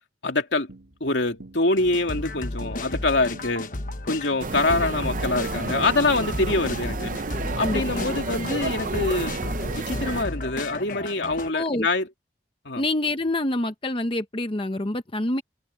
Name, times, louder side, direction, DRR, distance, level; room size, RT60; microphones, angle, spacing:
voice 1, 0.2-0.7 1.0-3.7 4.1-7.1 7.6-9.3 9.8-12.1 12.6-12.8, left 2 dB, 80° left, 2.9 m, -25 dB
sound 1, 0.7-8.4, right 1 dB, 70° right, 3.9 m, -48 dB
sound 2, 1.7-11.5, left 2 dB, 50° left, 1.2 m, -33 dB
sound 3, 4.4-10.2, right 3 dB, 45° right, 0.7 m, -31 dB
voice 2, 7.6-8.1 11.5-11.9 12.8-15.4, left 1 dB, 30° left, 1.0 m, -26 dB
head